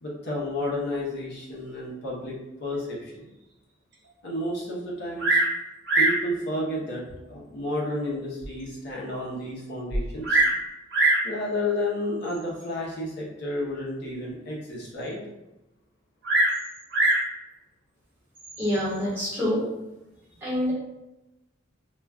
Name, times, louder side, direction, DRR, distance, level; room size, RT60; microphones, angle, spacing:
voice 1, 0.0-2.3 2.6-3.2 4.2-5.4 6.0-7.0 7.3-10.4 11.2-15.2, left 1 dB, 60° left, -4 dB, 0.6 m, -31 dB
Bird vocalization bird call bird song, 5.2-5.6 5.9-6.2 7.1-7.2 7.8-7.9 8.4-8.5 8.7-8.8 9.9-10.6 10.9-11.3 12.3-12.6 16.2-17.3 18.4-18.8, right 2 dB, 65° right, 0.6 m, -23 dB
voice 2, 18.6-19.6 20.4-20.7, equal, 15° right, -10 dB, 1.3 m, -26 dB
2.2 x 2.2 x 3.5 m, 0.97 s
head